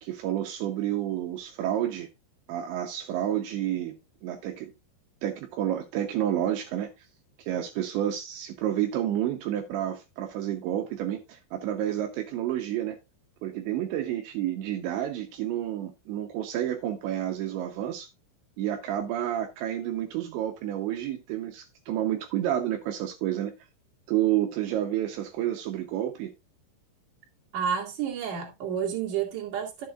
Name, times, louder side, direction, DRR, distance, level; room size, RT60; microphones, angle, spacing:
voice 1, 0.0-2.1 2.5-4.7 5.2-6.9 7.5-13.0 13.4-18.1 18.6-23.5 24.1-26.3, right 11 dB, 80° right, 3.0 m, -30 dB
voice 2, 27.5-29.9, right 8 dB, 45° right, 3.0 m, -30 dB
12.0 x 7.4 x 2.5 m
omnidirectional pair, 5.5 m